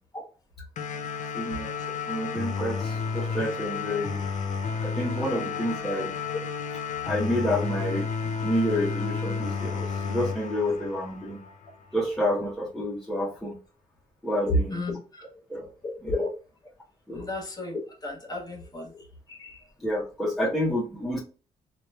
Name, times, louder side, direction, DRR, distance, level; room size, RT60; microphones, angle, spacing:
sound 1, 0.8-11.7, left 5 dB, 60° left, 0.5 m, -32 dB
voice 1, 1.3-1.7 2.1-4.2 4.8-6.1 7.0-11.4 11.9-13.6 14.2-14.8 15.5-15.7 16.0-16.1 17.1-17.3 19.8-21.2, equal, ahead, -5 dB, 0.9 m, -29 dB
voice 2, 14.5-15.0 15.8-16.3 17.1-19.0 19.3-19.6, left 1 dB, 25° left, 0 dB, 1.2 m, -31 dB
2.8 x 2.4 x 2.2 m, 0.36 s
cardioid pair, 65°, 14 cm